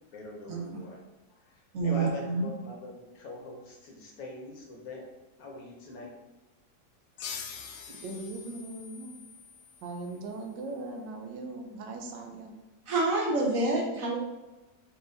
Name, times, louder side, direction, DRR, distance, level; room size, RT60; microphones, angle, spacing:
voice 1, 0.1-1.0 1.3-5.1 5.4-6.1, left 2 dB, 65° left, 0 dB, 1.1 m, -42 dB
voice 2, 1.7-2.5 12.9-14.2, right 2 dB, 60° right, -1 dB, 1.0 m, -27 dB
sound 1, 7.2-10.4, left 6 dB, 90° left, 1.2 m, -44 dB
voice 3, 7.9-9.2 9.8-12.5, right 2 dB, 85° right, 4 dB, 1.3 m, -39 dB
4.3 x 3.8 x 2.6 m, 1.1 s
omnidirectional pair, 1.9 m